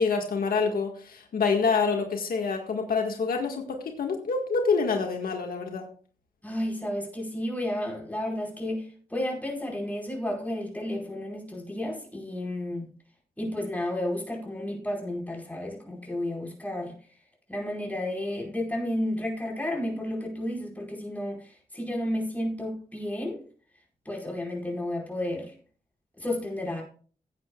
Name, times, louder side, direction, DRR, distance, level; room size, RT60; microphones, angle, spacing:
voice 1, 0.0-5.9, left 4 dB, 80° left, 1.8 m, -27 dB
voice 2, 6.4-12.9 13.4-16.9 17.5-23.4 24.0-25.5 26.2-26.8, left 1 dB, 10° left, 4.9 m, -32 dB
17.0 x 8.8 x 2.4 m
cardioid pair, 85°, 15 cm